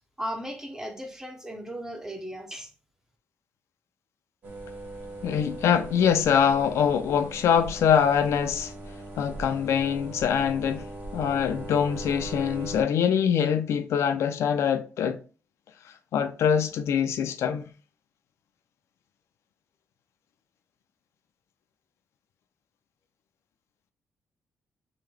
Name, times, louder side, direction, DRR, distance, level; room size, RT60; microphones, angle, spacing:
voice 1, 0.2-2.7, equal, 10° right, 0.6 m, -36 dB
sound 1, 4.4-12.8, right 1 dB, 40° right, 1.0 m, -39 dB
voice 2, 5.2-8.7 9.2-10.9 11.1-15.2 16.1-17.7, left 8 dB, 75° left, 0.4 m, -24 dB
3.8 x 2.1 x 3.1 m
cardioid pair, 130°, 5 cm